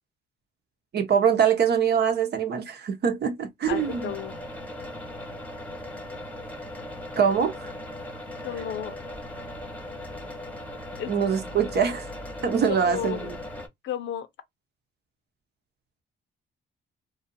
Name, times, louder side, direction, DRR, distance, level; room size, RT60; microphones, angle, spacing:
voice 1, 0.9-4.1 7.2-7.7 11.1-12.1 12.4-13.3, right 7 dB, 55° right, 0.8 m, -24 dB
voice 2, 3.7-4.4 8.4-9.0 11.0-11.1 12.7-13.3 13.8-14.3, left 9 dB, 70° left, 0.6 m, -33 dB
sound 1, 3.7-13.7, left 1 dB, 5° left, 0.9 m, -38 dB
2.6 x 2.4 x 2.5 m
cardioid pair, 90°, 20 cm